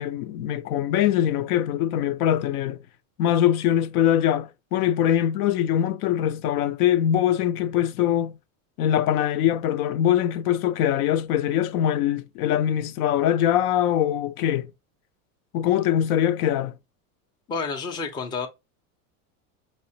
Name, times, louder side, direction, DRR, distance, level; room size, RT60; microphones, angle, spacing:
voice 1, 0.0-2.8 3.2-8.3 8.8-14.7 15.5-16.7, left 11 dB, 80° left, 0.6 m, -22 dB
voice 2, 17.5-18.5, left 4 dB, 10° left, 0.4 m, -29 dB
4.2 x 2.1 x 2.6 m
supercardioid pair, 125°, 43 cm